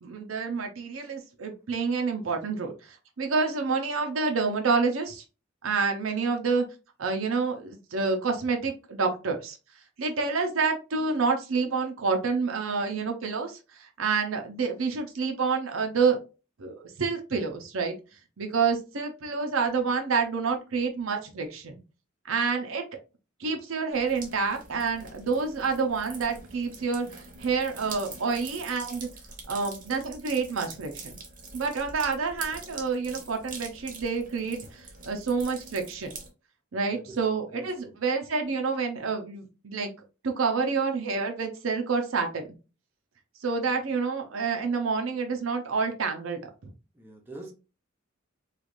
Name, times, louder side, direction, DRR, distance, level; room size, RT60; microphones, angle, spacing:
voice 1, 0.0-5.2 5.6-6.6 7.0-9.6 10.0-16.2 16.6-18.0 18.4-21.8 22.3-22.8 23.4-27.1 27.4-29.1 29.5-31.2 31.5-36.2 36.7-39.9 40.2-42.4 43.4-46.7, right 4 dB, 80° right, 4 dB, 0.7 m, -28 dB
sound 1, 23.9-36.3, right 4 dB, 40° right, 0.8 m, -44 dB
voice 2, 36.9-38.0 46.9-47.5, right 1 dB, 10° right, 1 dB, 0.7 m, -46 dB
3.1 x 2.4 x 2.5 m, 0.31 s
head